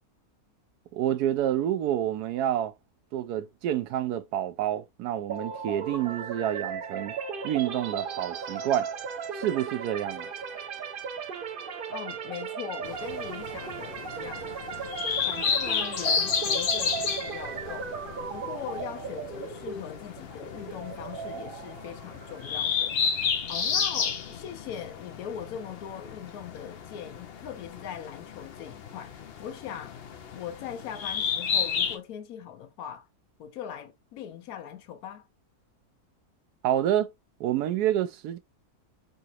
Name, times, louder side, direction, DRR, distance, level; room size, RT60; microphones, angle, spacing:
voice 1, 0.9-2.7 3.1-7.2 7.4-8.9 9.3-10.3 36.6-37.1 37.4-38.4, right 11 dB, 85° right, 1.1 m, -28 dB
sound 1, 5.3-23.1, right 6 dB, 60° right, 0.6 m, -37 dB
voice 2, 11.9-14.5 15.3-17.9 18.3-30.0 30.3-33.1 33.4-35.3, left 9 dB, 75° left, 1.2 m, -40 dB
sound 2, 12.8-32.0, left 6 dB, 55° left, 0.7 m, -32 dB
4.0 x 2.8 x 2.4 m
omnidirectional pair, 1.6 m